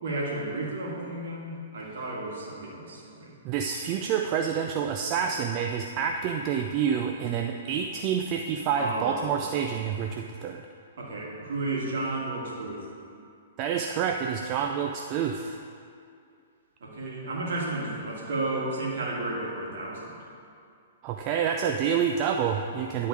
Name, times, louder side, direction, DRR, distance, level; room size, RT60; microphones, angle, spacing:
voice 1, 0.0-3.3 8.7-9.5 11.0-12.9 16.8-20.2 23.0-23.1, right 2 dB, 60° right, -3 dB, 1.8 m, -32 dB
voice 2, 3.4-10.6 13.6-15.6 21.0-23.1, right 7 dB, 35° right, 4 dB, 0.4 m, -28 dB
10.0 x 3.8 x 4.8 m, 2.4 s
figure-of-eight pair, 115°, 0 cm